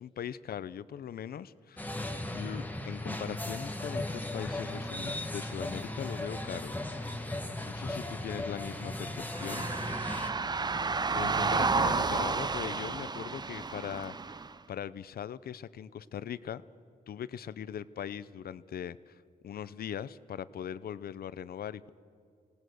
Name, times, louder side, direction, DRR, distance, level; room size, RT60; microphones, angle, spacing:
voice 1, 0.0-1.9 2.3-6.7 7.6-10.0 11.1-14.4 14.7-16.6 17.1-21.9, left 9 dB, 80° left, 17 dB, 0.6 m, -40 dB
sound 1, 1.8-10.3, left 1 dB, 10° left, 1.5 m, -37 dB
sound 2, 9.3-14.5, right 4 dB, 25° right, 0.6 m, -31 dB
27.0 x 18.5 x 6.4 m, 2.3 s
wide cardioid pair, 110°, 16 cm